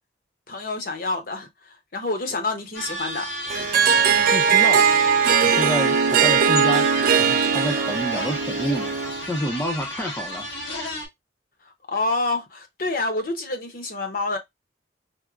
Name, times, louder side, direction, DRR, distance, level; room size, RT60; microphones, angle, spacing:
voice 1, 0.5-1.5 1.9-3.3 11.9-14.4, left 2 dB, 55° left, 0.8 m, -27 dB
sound 1, 2.7-11.1, left 1 dB, 85° left, 1.4 m, -33 dB
Harp, 3.5-9.3, right 7 dB, 50° right, 0.3 m, -19 dB
voice 2, 4.1-5.0 5.4-6.9 7.2-9.0 9.3-10.5, equal, 10° left, 0.5 m, -29 dB
4.5 x 2.0 x 2.4 m
head